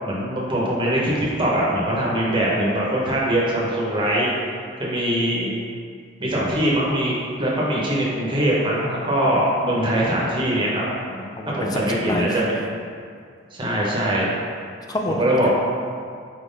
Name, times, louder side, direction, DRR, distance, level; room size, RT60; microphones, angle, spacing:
voice 1, 0.0-4.3 4.8-5.5 6.2-10.8 11.5-12.6 13.5-14.3 15.1-15.5, right 1 dB, 25° right, -5 dB, 0.8 m, -22 dB
voice 2, 11.1-12.3 14.9-15.5, left 1 dB, 20° left, 1 dB, 0.3 m, -28 dB
4.5 x 2.5 x 3.6 m, 2.3 s
head